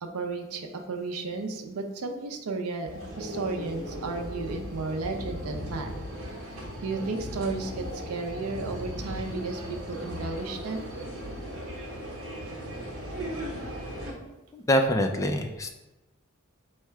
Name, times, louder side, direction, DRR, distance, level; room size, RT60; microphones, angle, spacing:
voice 1, 0.0-2.9 3.2-5.9 6.8-10.9, right 3 dB, 85° right, 4 dB, 0.5 m, -33 dB
sound 1, 2.9-14.1, equal, 70° right, 1.0 m, -37 dB
voice 2, 14.5-15.7, equal, 15° left, 4 dB, 0.3 m, -25 dB
4.7 x 2.2 x 4.5 m, 1.1 s
head